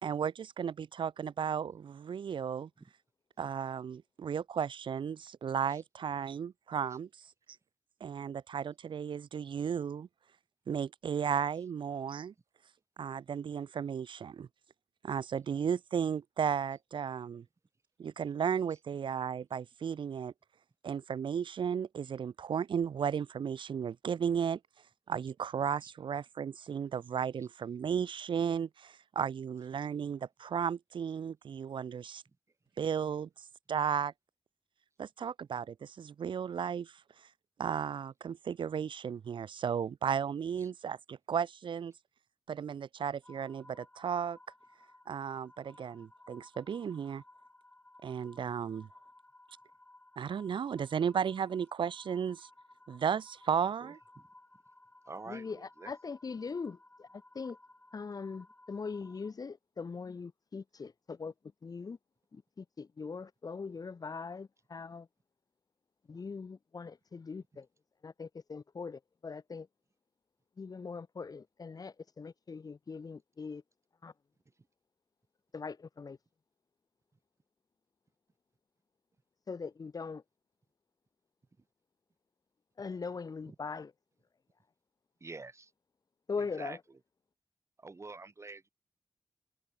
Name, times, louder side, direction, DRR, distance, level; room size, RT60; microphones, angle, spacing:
voice 1, 0.0-2.7 3.4-7.2 8.0-10.1 10.7-12.3 13.0-14.5 15.0-17.4 18.0-20.3 20.8-24.6 25.1-32.2 32.8-33.3 33.7-34.1 35.0-37.0 37.6-41.9 42.5-44.4 45.1-47.2 48.0-48.9 50.2-52.5 52.9-54.0, right 7 dB, 90° right, 1.0 m, -34 dB
sound 1, 43.2-59.3, left 1 dB, 15° left, 2.3 m, -59 dB
voice 2, 53.8-54.3 55.1-55.9 66.1-66.2 81.6-81.7 83.5-83.6 85.2-85.7 86.4-87.0 87.8-88.7, right 3 dB, 35° right, 3.8 m, -48 dB
voice 3, 55.3-57.6 57.9-61.3 61.6-62.0 62.3-65.1 66.1-67.7 68.0-69.7 70.6-73.6 74.0-74.1 75.5-76.2 79.5-80.2 82.8-83.9 86.3-86.8, left 5 dB, 50° left, 1.5 m, -41 dB
wide cardioid pair, 100°, 8 cm